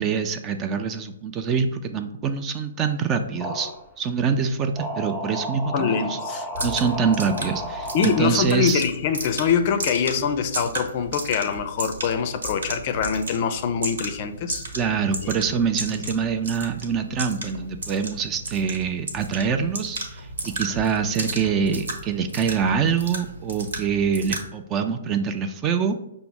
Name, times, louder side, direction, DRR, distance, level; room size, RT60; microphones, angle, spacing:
voice 1, 0.0-3.7 4.0-8.8 14.7-26.0, right 6 dB, 25° right, 7 dB, 0.4 m, -25 dB
sound 1, 3.4-3.8 4.7-8.2, equal, ahead, 0.7 m, -32 dB
voice 2, 5.7-6.7 7.9-14.7 15.2-15.4, left 7 dB, 40° left, 8 dB, 0.4 m, -24 dB
sound 2, 6.5-24.5, right 2 dB, 75° right, 1.3 m, -34 dB
5.7 x 2.0 x 3.7 m, 0.81 s
hypercardioid pair, 130°, 0 cm